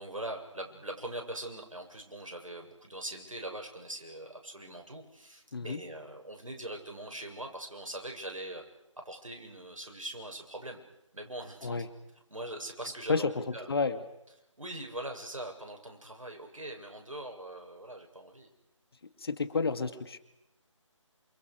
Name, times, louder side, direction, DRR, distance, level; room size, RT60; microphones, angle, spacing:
voice 1, 0.0-8.6 9.0-10.8 11.1-11.8 12.3-13.7 14.6-18.5, right 1 dB, 80° right, 3 dB, 7.6 m, -42 dB
voice 2, 13.7-14.0 19.2-20.2, left 4 dB, 50° left, 11 dB, 2.3 m, -30 dB
29.0 x 28.5 x 6.6 m, 0.85 s
figure-of-eight pair, 155°, 17 cm